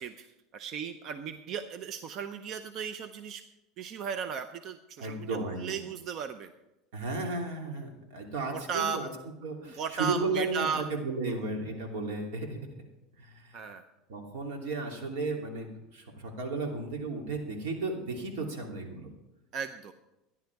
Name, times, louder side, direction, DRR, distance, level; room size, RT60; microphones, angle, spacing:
voice 1, 0.0-3.4 3.8-6.5 8.5-9.0 9.6-10.8 13.5-13.8 19.5-19.9, right 6 dB, 40° right, 9 dB, 0.6 m, -36 dB
voice 2, 5.0-5.8 6.9-9.1 9.4-12.6 13.2-13.6 14.1-19.1, right 3 dB, 80° right, 1 dB, 2.8 m, -34 dB
13.0 x 10.5 x 4.7 m, 0.95 s
supercardioid pair, 150°, 0 cm